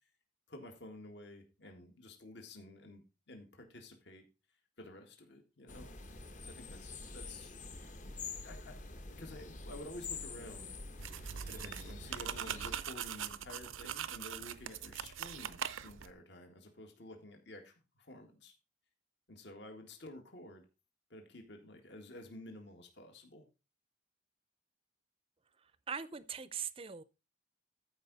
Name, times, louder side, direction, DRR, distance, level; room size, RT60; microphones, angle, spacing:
voice 1, 0.5-4.2 4.8-5.9 6.4-7.9 8.4-8.8 9.1-10.7 11.5-18.5 19.3-20.6 21.1-23.4, left 1 dB, 60° left, 1.8 m, -51 dB
sound 1, 5.7-12.7, left 4 dB, 40° left, 1.1 m, -47 dB
sound 2, 11.0-16.1, right 9 dB, 85° right, 0.6 m, -42 dB
voice 2, 25.6-27.0, right 7 dB, 30° right, 0.5 m, -41 dB
14.0 x 4.9 x 4.0 m
head